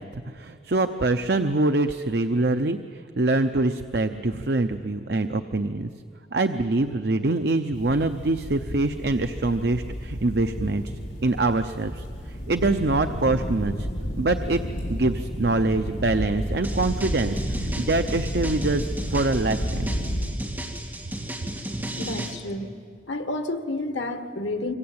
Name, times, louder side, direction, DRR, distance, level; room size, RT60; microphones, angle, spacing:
voice 1, 0.0-5.9 6.3-10.8 11.2-12.1 12.5-13.9 14.2-14.6 14.9-19.9, right 2 dB, 60° right, 8 dB, 0.7 m, -24 dB
sound 1, 7.7-20.3, equal, 65° left, 6.4 m, -31 dB
sound 2, 16.6-22.3, right 1 dB, 10° right, 2.6 m, -34 dB
voice 2, 22.0-22.7 23.1-24.7, left 2 dB, 80° left, 8 dB, 1.7 m, -30 dB
26.0 x 24.0 x 8.8 m, 2.3 s
head